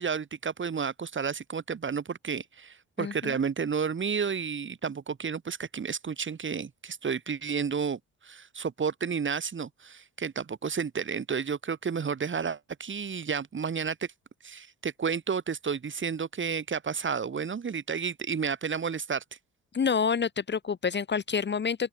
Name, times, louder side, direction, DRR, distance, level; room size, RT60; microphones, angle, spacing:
voice 1, 0.0-14.1 14.4-19.2, right 6 dB, 40° right, 3.9 m, -31 dB
voice 2, 3.0-3.4 19.7-21.9, left 6 dB, 35° left, 1.5 m, -28 dB
open air
cardioid pair, 90°, 30 cm